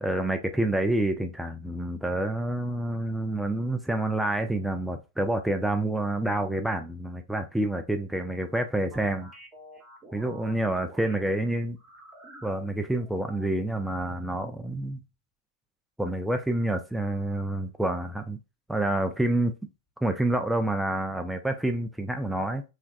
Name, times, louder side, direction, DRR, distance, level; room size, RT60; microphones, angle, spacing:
voice 1, 0.0-9.3 10.1-11.8 12.4-15.0 16.0-18.4 18.7-19.5 20.0-22.6, right 1 dB, 5° right, 0.4 m, -28 dB
sound 1, 8.9-11.3 11.8-13.6 14.0-14.5, right 2 dB, 20° right, 1.1 m, -48 dB
3.3 x 2.3 x 2.3 m
hypercardioid pair, 110°, 0 cm